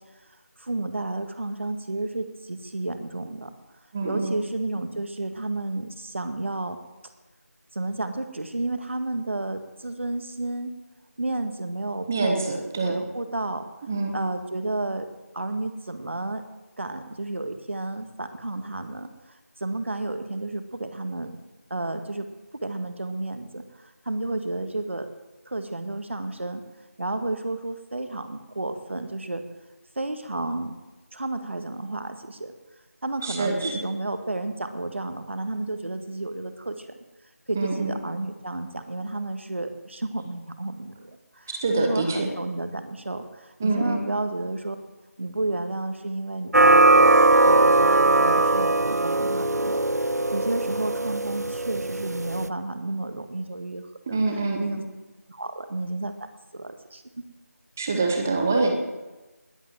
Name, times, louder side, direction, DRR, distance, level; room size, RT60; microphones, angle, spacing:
voice 1, 0.6-3.5 4.0-6.8 7.7-10.7 11.2-13.7 14.1-15.1 15.3-16.4 16.8-19.1 19.6-21.3 21.7-22.3 22.6-25.1 25.5-26.6 27.0-29.4 30.0-30.7 31.1-32.5 33.0-37.0 37.5-44.8 45.2-49.8 50.3-54.2 54.6-54.8 55.3-57.0, right 2 dB, 50° right, 8 dB, 1.7 m, -31 dB
voice 2, 3.9-4.4 12.1-13.0 13.9-14.1 33.2-33.8 37.5-37.9 41.5-42.3 43.6-44.0 54.1-54.8 57.8-58.8, right 3 dB, 10° right, 3 dB, 0.8 m, -25 dB
sound 1, 46.5-52.5, right 2 dB, 80° right, 0.9 m, -20 dB
20.0 x 8.3 x 7.8 m, 1.1 s
figure-of-eight pair, 170°, 9 cm